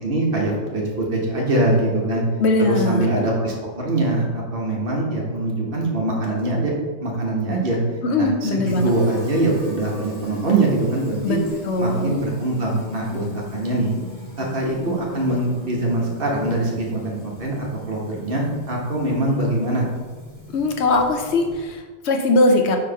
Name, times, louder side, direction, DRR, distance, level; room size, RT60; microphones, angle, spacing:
voice 1, 0.0-2.2 2.7-6.7 7.0-7.8 8.2-11.4 11.8-13.2 13.5-13.9 14.4-19.9, right 2 dB, 50° right, -2 dB, 1.4 m, -23 dB
voice 2, 2.4-3.1 8.0-8.9 11.2-11.4 11.6-12.1 20.5-22.8, left 2 dB, 65° left, 3 dB, 1.0 m, -20 dB
Fill (with liquid), 8.6-21.7, left 1 dB, 15° left, 1.1 m, -38 dB
4.6 x 3.7 x 5.6 m, 1.4 s
omnidirectional pair, 1.2 m